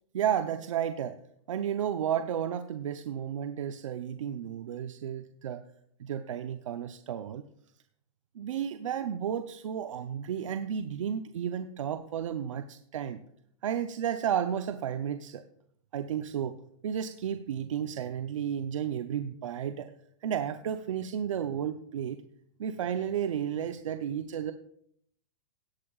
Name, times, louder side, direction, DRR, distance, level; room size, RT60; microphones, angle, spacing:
voice 1, 0.1-1.2 1.5-5.6 6.0-7.4 8.3-13.2 13.6-15.4 15.9-16.6 16.8-19.9 20.2-22.2 22.6-24.5, right 9 dB, 90° right, 8 dB, 0.7 m, -32 dB
17.0 x 8.5 x 2.4 m, 0.68 s
hypercardioid pair, 145°, 16 cm